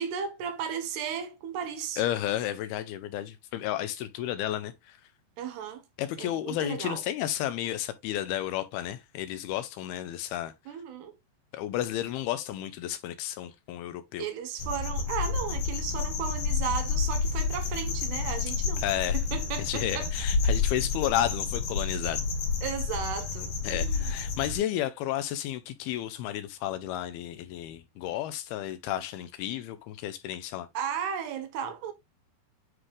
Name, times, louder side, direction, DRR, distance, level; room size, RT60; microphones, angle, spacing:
voice 1, 0.0-2.0 5.4-5.8 6.2-7.0 10.7-11.1 14.2-18.8 19.3-20.1 22.6-24.1 30.7-31.9, right 8 dB, 80° right, 3.3 m, -35 dB
voice 2, 2.0-5.0 6.0-10.5 11.5-14.3 18.8-19.2 19.6-22.3 23.6-30.7, left 12 dB, 80° left, 2.3 m, -32 dB
sound 1, 14.6-24.6, left 4 dB, 65° left, 4.4 m, -30 dB
9.7 x 3.7 x 3.1 m
omnidirectional pair, 4.8 m